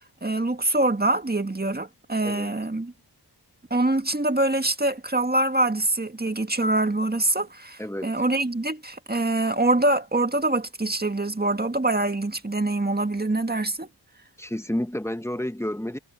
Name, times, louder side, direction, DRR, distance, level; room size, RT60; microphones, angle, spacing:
voice 1, 0.2-2.9 3.7-13.9, right 2 dB, 20° right, 1.7 m, -24 dB
voice 2, 2.2-2.5 7.8-8.1 14.4-16.0, left 1 dB, 5° left, 1.0 m, -30 dB
cardioid pair, 45°, 42 cm